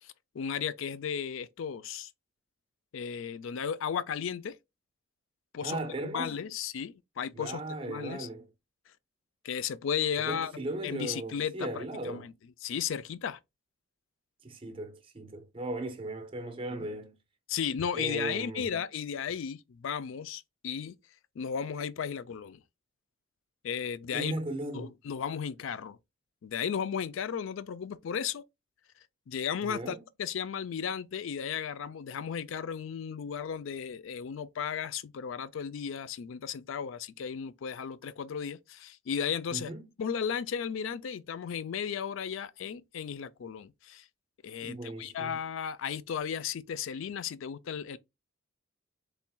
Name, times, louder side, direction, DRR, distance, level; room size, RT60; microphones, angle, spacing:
voice 1, 0.0-2.1 2.9-4.6 5.5-5.8 6.1-7.6 7.9-8.3 8.9-9.0 9.4-10.5 10.8-12.3 12.6-13.4 16.8-16.9 17.5-21.0 21.4-22.6 23.6-24.3 24.7-26.0 26.4-28.4 29.3-39.7 40.0-44.1 44.4-48.0, left 7 dB, 70° left, 0.4 m, -35 dB
voice 2, 5.6-6.4 7.3-8.5 10.2-12.3 14.4-17.2 17.9-18.8 24.1-24.9 29.6-30.0 39.5-39.8 44.6-45.4, right 2 dB, 25° right, 0.5 m, -37 dB
4.3 x 3.4 x 2.2 m
head